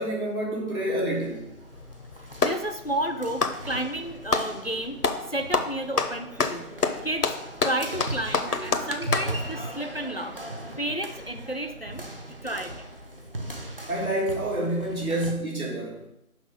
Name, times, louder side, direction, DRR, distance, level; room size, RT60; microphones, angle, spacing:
voice 1, 0.0-1.5 13.9-16.0, right 1 dB, 65° right, -3 dB, 3.3 m, -28 dB
sound 1, 1.1-15.3, right 1 dB, 40° right, 0.8 m, -39 dB
Clapping, 1.7-2.7 3.3-4.5 5.0-5.3 5.5-9.3, left 4 dB, 90° left, 0.9 m, -26 dB
voice 2, 2.4-5.0 5.3-6.7 7.0-7.3 7.6-10.4 10.8-12.0 12.3-12.9, right 1 dB, 45° left, 7 dB, 0.5 m, -31 dB
6.1 x 5.8 x 5.1 m, 0.84 s
figure-of-eight pair, 170°, 45 cm